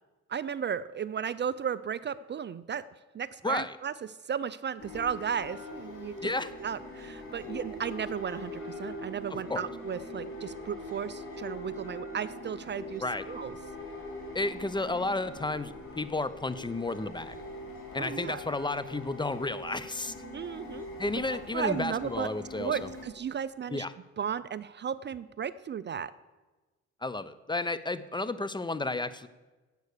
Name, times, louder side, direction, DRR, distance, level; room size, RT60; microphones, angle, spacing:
voice 1, 0.3-2.8 3.1-3.9 4.2-6.2 6.6-13.6 18.0-18.4 20.3-20.9 21.3-22.3 22.6-23.9 24.2-26.1, right 8 dB, 35° right, 16 dB, 0.4 m, -34 dB
sound 1, 4.8-23.0, left 1 dB, 50° left, 4.2 m, -42 dB
voice 2, 14.3-17.4 17.9-20.1 21.0-22.8 23.7-23.9 27.0-29.3, left 2 dB, 15° left, 15 dB, 0.5 m, -32 dB
11.0 x 8.3 x 6.6 m, 1.2 s
cardioid pair, 90°, 30 cm